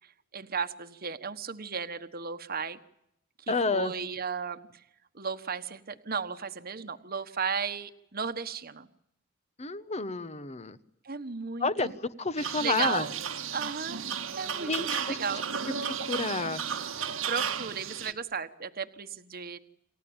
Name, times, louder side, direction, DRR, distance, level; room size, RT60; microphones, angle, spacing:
voice 1, 0.3-2.8 3.5-4.7 5.1-8.9 11.0-12.0 12.6-13.1 13.5-14.0 14.4-15.5 17.3-19.6, right 5 dB, 50° right, 9 dB, 1.3 m, -35 dB
voice 2, 3.5-3.9 9.6-10.8 11.6-13.1 14.7-15.2 15.9-16.6, left 3 dB, 35° left, 13 dB, 1.1 m, -30 dB
sound 1, 12.4-18.1, right 7 dB, 85° right, 1.7 m, -34 dB
28.0 x 14.5 x 8.9 m, 0.79 s
head